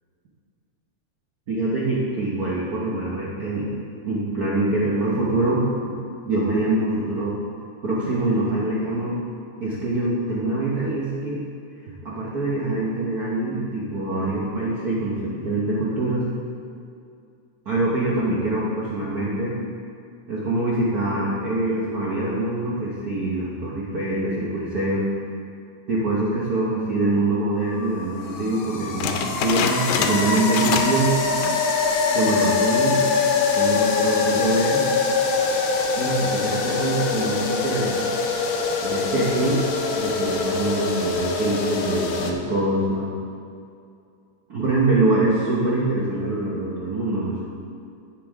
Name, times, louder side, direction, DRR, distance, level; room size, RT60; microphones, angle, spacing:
voice 1, 1.5-3.7 4.0-6.0 6.2-7.4 7.8-9.2 9.6-11.4 12.0-16.3 17.6-19.6 20.3-25.1 25.9-31.1 32.1-33.0 33.5-34.9 36.0-38.0 38.8-39.6 40.0-43.1 44.5-47.4, right 2 dB, 85° right, -6 dB, 0.8 m, -24 dB
sound 1, 27.7-42.3, left 4 dB, 70° left, 1.6 m, -24 dB
sound 2, 29.0-31.1 31.3-31.7 32.2-32.3 32.9-33.3, left 6 dB, 85° left, 2.1 m, -26 dB
15.0 x 5.8 x 3.5 m, 2.4 s
omnidirectional pair, 3.4 m